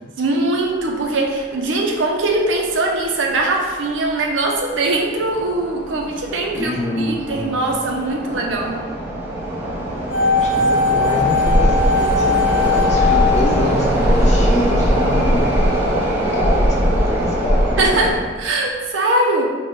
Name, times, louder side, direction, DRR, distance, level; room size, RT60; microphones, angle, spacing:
voice 1, 0.2-6.7 7.0-8.7 17.8-19.4, right 2 dB, 80° right, 0 dB, 0.5 m, -21 dB
sound 1, 1.3-1.4 1.6-1.7 2.5-2.7 3.0-3.2 3.7-4.1 4.6-18.2, equal, 15° right, 0.7 m, -20 dB
voice 2, 6.5-7.5 10.4-15.4 16.3-17.6, left 1 dB, 40° left, -2 dB, 0.6 m, -26 dB
sound 2, 10.1-14.2 14.5-14.6, left 4 dB, 90° left, 0.7 m, -19 dB
4.1 x 2.2 x 3.1 m, 1.4 s
head